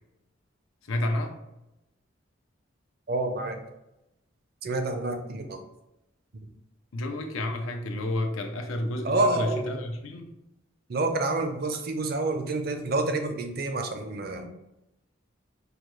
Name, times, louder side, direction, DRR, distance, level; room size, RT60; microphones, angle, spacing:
voice 1, 0.9-1.4 6.9-10.3, left 1 dB, 90° left, 4 dB, 0.6 m, -30 dB
voice 2, 3.1-3.6 4.6-5.6 9.0-9.8 10.9-14.5, right 2 dB, 50° right, 5 dB, 0.5 m, -28 dB
4.9 x 2.3 x 3.0 m, 0.91 s
head